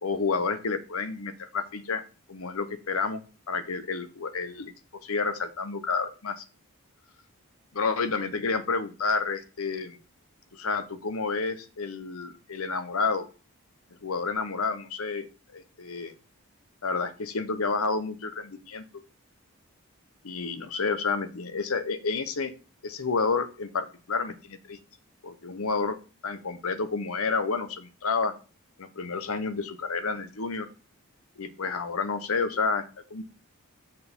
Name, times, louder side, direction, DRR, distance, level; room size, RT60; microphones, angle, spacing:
voice 1, 0.0-2.0 2.3-3.2 3.5-4.7 5.0-6.4 7.7-10.0 10.5-13.3 14.0-15.3 15.5-16.1 16.8-18.8 20.2-22.5 22.8-24.8 25.2-26.0 26.2-28.3 28.8-30.7 31.4-32.8 33.1-33.2, left 4 dB, 75° left, 11 dB, 0.9 m, -30 dB
6.6 x 4.4 x 5.3 m, 0.34 s
head